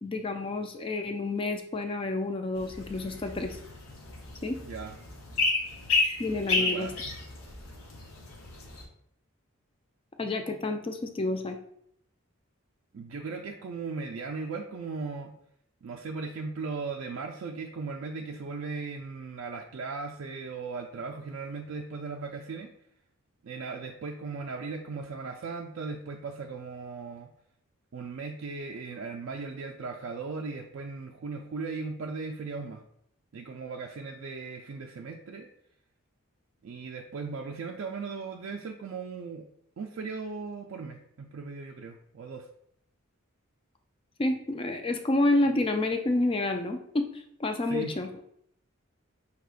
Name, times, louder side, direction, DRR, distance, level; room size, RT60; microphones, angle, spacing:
voice 1, 0.0-3.6 4.4-4.6 6.2-6.9 10.2-11.6 44.2-47.1 47.4-48.1, left 2 dB, 25° left, 6 dB, 0.3 m, -29 dB
sound 1, 2.6-8.8, left 3 dB, 75° left, 0.8 m, -32 dB
voice 2, 6.5-7.1 12.9-15.3 15.8-22.7 23.4-27.3 27.9-32.8 33.3-35.5 36.6-39.5 39.8-42.5 47.7-47.9, right 4 dB, 65° right, 2 dB, 0.3 m, -37 dB
6.0 x 2.9 x 2.4 m, 0.72 s
head